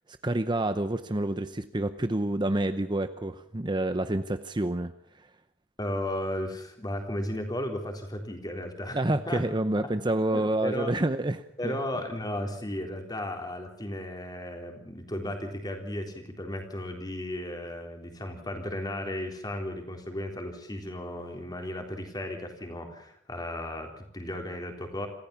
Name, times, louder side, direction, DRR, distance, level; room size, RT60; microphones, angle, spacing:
voice 1, 0.2-4.9 5.2-5.3 8.9-11.8, right 1 dB, 25° right, 10 dB, 0.8 m, -28 dB
voice 2, 5.8-9.0 9.3-9.4 10.3-11.0 11.6-25.1, left 1 dB, 20° left, 4 dB, 3.8 m, -35 dB
27.0 x 15.5 x 7.1 m, 0.70 s
head